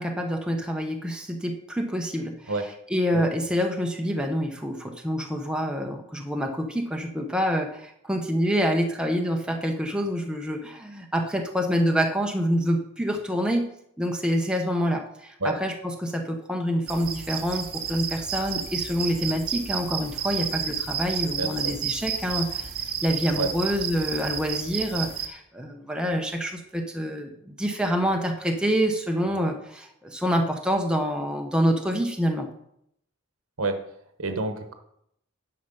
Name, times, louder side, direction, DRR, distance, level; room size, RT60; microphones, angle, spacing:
voice 1, 0.0-13.7 14.0-22.7 23.0-32.5, equal, 5° right, 2 dB, 0.9 m, -27 dB
sound 1, 16.9-25.3, right 7 dB, 45° right, 0.9 m, -31 dB
voice 2, 21.4-21.7 23.4-23.5 33.6-33.8 34.2-34.7, right 3 dB, 75° right, 7 dB, 1.2 m, -28 dB
10.0 x 6.8 x 5.4 m, 0.74 s
head